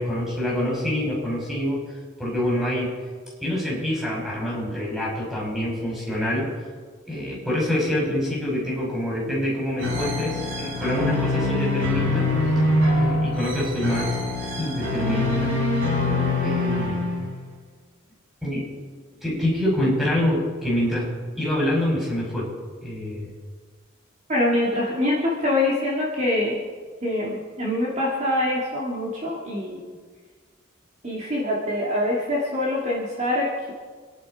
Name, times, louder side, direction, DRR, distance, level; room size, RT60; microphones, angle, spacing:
voice 1, 0.0-1.8 2.2-3.0 3.4-6.5 7.1-12.3 13.0-14.2 14.6-15.6 16.4-17.0 18.4-18.8 19.2-21.1 21.4-22.5 22.8-23.3, left 1 dB, ahead, -5 dB, 5.5 m, -26 dB
sound 1, 9.8-17.5, left 2 dB, 80° right, 5.8 m, -24 dB
voice 2, 24.3-26.6 27.0-29.9 31.0-33.7, left 1 dB, 35° right, -5 dB, 2.7 m, -24 dB
26.0 x 11.0 x 5.1 m, 1.5 s
head